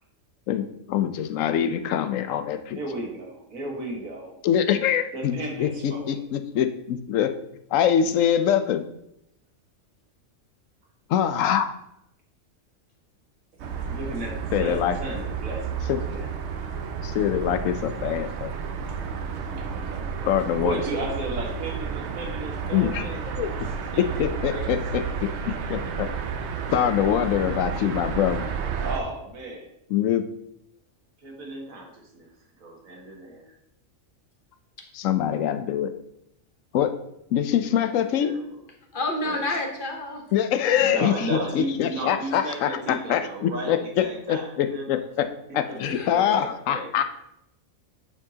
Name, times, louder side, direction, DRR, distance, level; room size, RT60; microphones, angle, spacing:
voice 1, 0.5-2.8 4.4-7.3 7.7-8.8 11.1-11.7 14.5-15.0 15.9-16.0 17.0-18.5 20.2-20.8 22.7-23.1 23.4-23.5 24.2-26.1 26.7-28.4 29.9-30.2 34.9-35.9 36.7-36.9 37.3-38.3 40.3-45.3 45.5-47.0, left 9 dB, 75° left, 9 dB, 1.0 m, -24 dB
voice 2, 2.8-4.4 5.1-6.2 13.8-16.6 19.5-20.3 20.6-23.5 23.9-25.0 25.8-25.9 27.0-27.4 28.8-29.7 31.2-32.3 32.6-33.4 37.8-37.9 38.2-38.4 39.2-39.4 40.7-44.8 45.7-46.9, right 1 dB, 80° right, 0 dB, 1.8 m, -35 dB
sound 1, 13.6-29.0, right 6 dB, 65° right, 0.8 m, -31 dB
voice 3, 38.9-40.2 41.3-41.4 45.8-46.1, left 2 dB, 45° left, 2 dB, 1.1 m, -29 dB
9.6 x 4.5 x 2.8 m, 0.79 s
omnidirectional pair, 1.4 m